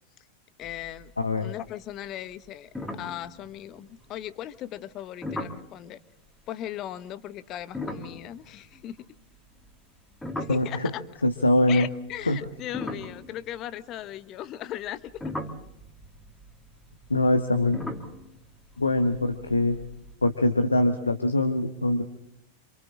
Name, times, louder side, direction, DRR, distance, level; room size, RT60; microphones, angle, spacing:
voice 1, 0.6-1.1 1.4-6.0 6.5-9.0 10.4-11.0 11.7-15.1, left 12 dB, 35° left, 15 dB, 1.1 m, -38 dB
sound 1, 0.6-1.3 1.6-2.0 2.3-2.4 2.7-4.1 5.2-5.7 7.6-11.2 12.0-14.2 14.8-20.1, left 1 dB, 5° left, 2.5 m, -39 dB
voice 2, 1.2-1.5 10.5-10.9 11.2-11.9 12.3-12.4 17.1-17.8 18.8-19.8 20.2-22.0, left 1 dB, 80° left, 7 dB, 1.4 m, -23 dB
28.5 x 26.5 x 3.7 m, 0.77 s
figure-of-eight pair, 90°, 0 cm